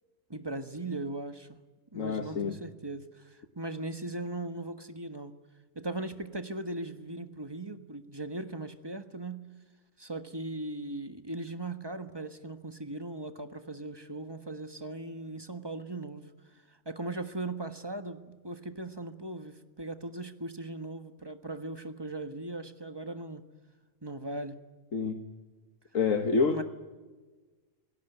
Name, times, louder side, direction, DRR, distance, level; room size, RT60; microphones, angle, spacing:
voice 1, 0.3-1.6 1.9-5.3 5.7-9.4 10.0-16.2 16.7-23.4 24.0-24.6 26.5-26.6, right 2 dB, 20° right, 8 dB, 1.3 m, -38 dB
voice 2, 1.9-2.6 24.9-25.2 25.9-26.6, left 5 dB, 85° left, 6 dB, 1.7 m, -27 dB
27.5 x 17.5 x 9.3 m, 1.3 s
omnidirectional pair, 1.3 m